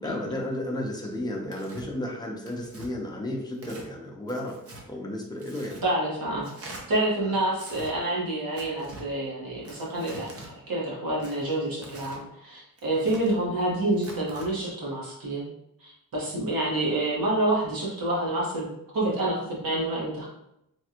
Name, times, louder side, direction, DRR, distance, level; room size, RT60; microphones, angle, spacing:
voice 1, 0.0-4.6 4.8-5.8 7.2-7.3, left 1 dB, 10° left, -1 dB, 0.7 m, -33 dB
Tearing, 1.5-1.9 2.5-2.9 3.5-3.9 4.3-4.8 5.4-5.8 6.4-6.8 7.5-7.9 8.6-9.1 9.6-10.5 11.2-12.2 12.8-13.4 13.9-14.5, right 2 dB, 40° right, 0.7 m, -44 dB
voice 2, 5.8-6.5 6.9-15.5 15.8-20.3, right 1 dB, 65° right, -5 dB, 1.3 m, -28 dB
3.4 x 2.3 x 2.8 m, 0.82 s
cardioid pair, 90°, 37 cm